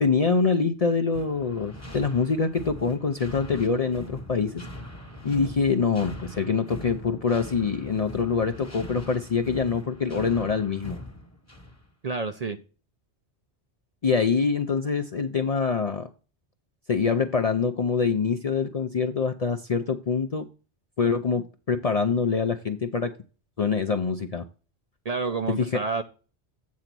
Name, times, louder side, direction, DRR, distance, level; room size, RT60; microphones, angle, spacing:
voice 1, 0.0-4.6 5.2-11.0 14.0-16.1 16.9-20.5 21.0-23.1 23.6-24.5 25.5-25.7, left 5 dB, 45° left, 7 dB, 0.5 m, -25 dB
sound 1, 1.1-11.9, left 1 dB, 15° left, 1.0 m, -42 dB
voice 2, 12.0-12.6 25.0-26.0, right 4 dB, 45° right, 7 dB, 0.6 m, -29 dB
8.5 x 3.9 x 5.9 m, 0.35 s
omnidirectional pair, 1.2 m